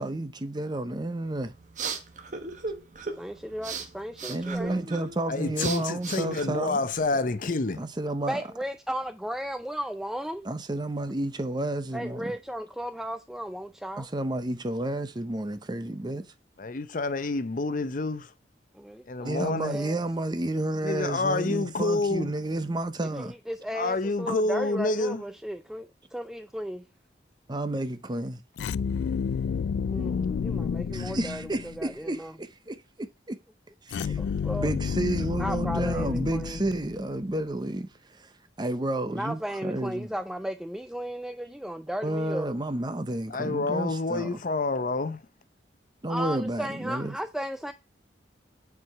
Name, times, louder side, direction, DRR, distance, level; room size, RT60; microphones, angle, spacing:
voice 1, 0.0-1.5 4.3-6.8 7.8-8.4 10.4-12.3 14.0-16.3 19.2-23.3 27.5-28.4 30.9-33.4 33.9-34.2 34.6-37.9 38.2-38.3 38.6-40.1 42.0-44.4 46.0-47.1, right 1 dB, 25° right, 0.7 m, -31 dB
sound 1, 1.3-7.2, right 5 dB, 45° right, 1.1 m, -38 dB
voice 2, 3.2-4.8 8.3-10.5 11.9-14.1 18.7-20.0 23.1-26.8 29.9-32.4 34.0-34.7 35.4-36.9 39.1-42.5 46.1-47.7, equal, 5° right, 0.3 m, -35 dB
voice 3, 5.3-7.8 16.6-18.3 19.1-19.8 20.8-22.3 23.7-25.2 43.3-45.2, left 3 dB, 50° left, 0.7 m, -28 dB
sound 2, 28.6-31.9 33.9-37.2, left 6 dB, 80° left, 0.3 m, -30 dB
7.4 x 4.7 x 4.7 m
head